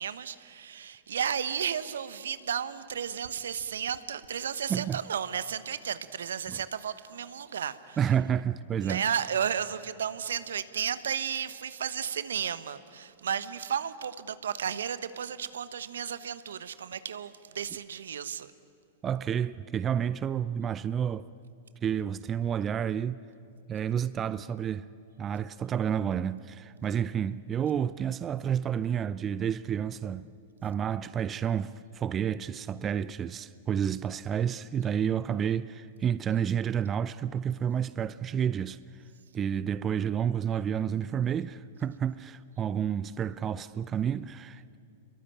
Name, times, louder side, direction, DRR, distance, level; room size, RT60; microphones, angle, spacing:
voice 1, 0.0-8.0 8.8-18.5, right 8 dB, 70° right, 1.1 m, -33 dB
voice 2, 8.0-9.1 19.0-21.3 21.8-23.2 23.7-24.9 25.2-30.3 30.6-39.0 39.3-44.8, right 8 dB, 25° right, 0.5 m, -30 dB
29.0 x 22.0 x 9.0 m
figure-of-eight pair, 100°, 0 cm